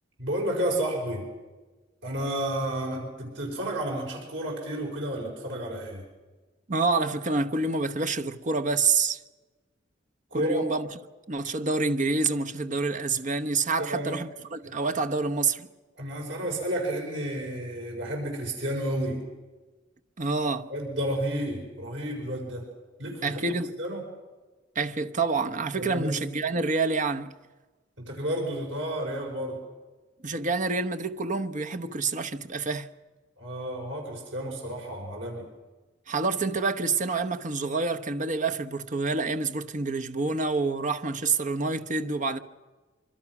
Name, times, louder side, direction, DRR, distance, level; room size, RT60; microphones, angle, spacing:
voice 1, 0.2-1.3 2.0-6.0 10.3-10.7 13.8-14.2 16.0-19.2 20.7-22.7 23.0-24.0 25.8-26.2 28.0-29.6 33.4-35.5, right 1 dB, 75° right, 5.4 m, -31 dB
voice 2, 6.7-9.2 10.3-10.9 11.3-15.7 20.2-20.7 23.2-23.7 24.7-27.3 30.2-32.9 36.1-42.4, right 3 dB, 40° right, 1.0 m, -27 dB
25.5 x 25.0 x 6.1 m
head